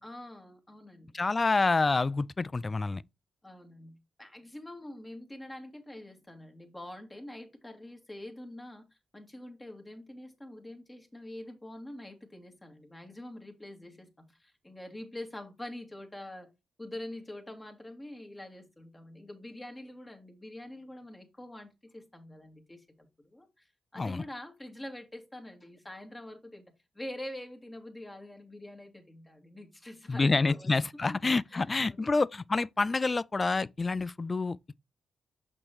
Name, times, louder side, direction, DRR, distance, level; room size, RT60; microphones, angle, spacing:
voice 1, 0.0-1.2 3.4-8.9 9.1-16.5 16.8-26.6 26.9-30.7 31.0-31.2 31.5-32.1, left 1 dB, 20° left, 2.2 m, -45 dB
voice 2, 1.1-3.0 24.0-24.2 30.1-34.6, left 3 dB, 35° left, 0.3 m, -28 dB
6.4 x 5.8 x 3.0 m
supercardioid pair, 45°, 0 cm